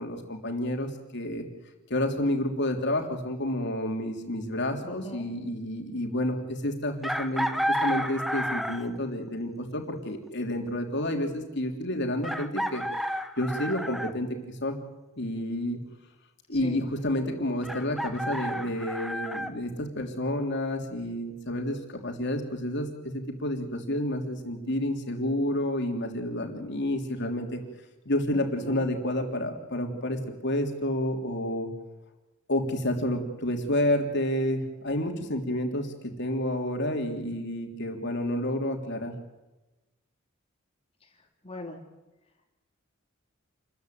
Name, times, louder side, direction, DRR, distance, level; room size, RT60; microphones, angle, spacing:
voice 1, 0.0-1.4 1.9-12.8 13.4-14.8 15.2-15.8 16.5-27.6 28.0-31.7 32.5-39.1, left 1 dB, 55° left, 3 dB, 3.4 m, -30 dB
voice 2, 4.8-5.3 16.6-16.8 28.3-28.9 41.4-41.8, left 2 dB, 30° left, 2 dB, 3.0 m, -41 dB
Chicken rooster, 7.0-9.0 10.7-10.8 12.2-14.2 17.6-19.5, equal, ahead, 1.2 m, -31 dB
28.5 x 14.5 x 9.4 m, 1.0 s
head